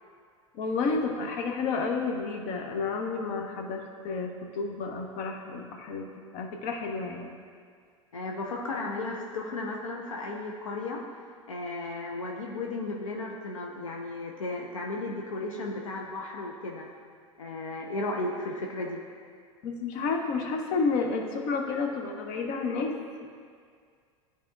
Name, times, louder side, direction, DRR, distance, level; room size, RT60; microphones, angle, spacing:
voice 1, 0.5-6.1 6.3-7.3 19.6-22.9, left 4 dB, 50° left, 3 dB, 0.9 m, -30 dB
voice 2, 8.1-11.0 11.5-16.9 17.4-19.0, left 2 dB, 80° left, 0 dB, 0.7 m, -34 dB
12.5 x 4.3 x 2.4 m, 2.1 s
figure-of-eight pair, 85°, 17 cm